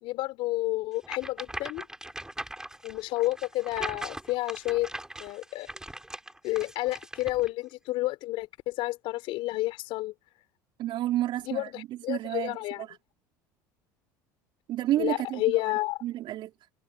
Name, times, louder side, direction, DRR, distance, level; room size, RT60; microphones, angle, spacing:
voice 1, 0.0-1.9 2.8-4.9 5.2-5.7 6.4-10.1 11.4-12.8 15.0-16.0, left 18 dB, 65° left, 4.5 m, -30 dB
sound 1, 1.0-7.5, right 1 dB, 5° right, 7.3 m, -40 dB
voice 2, 10.8-12.9 14.7-15.4 16.0-16.5, right 14 dB, 55° right, 4.3 m, -30 dB
hypercardioid pair, 75°, 10 cm